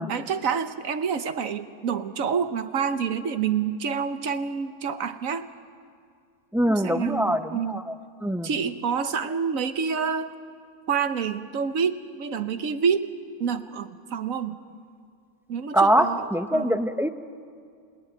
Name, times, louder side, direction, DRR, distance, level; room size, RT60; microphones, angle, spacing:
voice 1, 0.1-5.5 6.7-7.8 8.4-10.3 10.9-13.1 13.4-14.6 15.5-16.8, right 6 dB, 70° right, 10 dB, 1.4 m, -28 dB
voice 2, 6.5-8.0 8.2-8.5 15.7-17.1, equal, 5° right, 9 dB, 0.3 m, -23 dB
28.5 x 18.5 x 9.1 m, 2.2 s
omnidirectional pair, 1.5 m